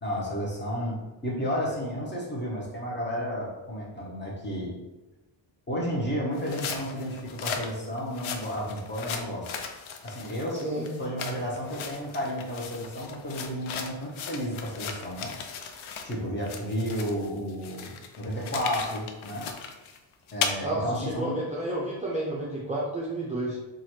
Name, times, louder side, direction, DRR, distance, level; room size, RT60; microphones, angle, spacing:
voice 1, 0.0-4.7 5.7-9.5 10.0-10.7 11.0-15.3 16.0-19.5 20.3-21.3, equal, 25° left, -3 dB, 0.7 m, -32 dB
sound 1, 6.3-16.2 16.4-20.5, left 6 dB, 90° left, 0.6 m, -37 dB
voice 2, 20.6-23.6, right 1 dB, 15° right, -6 dB, 0.4 m, -31 dB
2.9 x 2.5 x 4.3 m, 1.1 s
wide cardioid pair, 155°, 47 cm